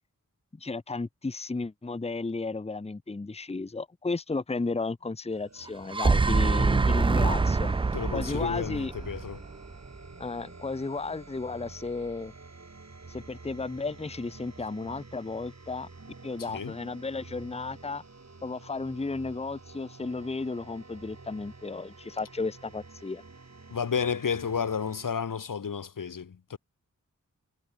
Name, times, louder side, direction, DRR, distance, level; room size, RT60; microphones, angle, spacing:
voice 1, 0.5-7.7 8.1-8.9 10.2-12.3 13.1-15.9 16.2-18.0 18.4-23.2, left 3 dB, 20° left, 0.8 m, -34 dB
sound 1, 5.3-25.2, right 3 dB, 55° right, 6.9 m, -49 dB
sound 2, 5.7-9.9, right 4 dB, 15° right, 0.3 m, -25 dB
voice 2, 7.9-9.4 16.5-16.7 23.7-26.6, left 6 dB, 80° left, 1.5 m, -31 dB
cardioid pair, 45°, 32 cm